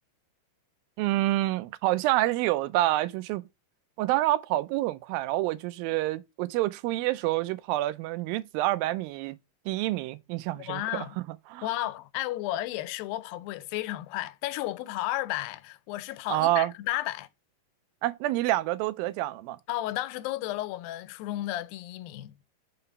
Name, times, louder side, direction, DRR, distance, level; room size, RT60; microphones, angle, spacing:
voice 1, 1.0-3.4 4.0-9.4 9.7-11.2 11.5-11.7 16.3-16.7 18.0-19.6, right 16 dB, 90° right, 2.4 m, -27 dB
voice 2, 10.6-11.2 11.6-17.3 19.7-22.4, left 15 dB, 85° left, 2.3 m, -33 dB
5.6 x 3.9 x 5.3 m
omnidirectional pair, 4.1 m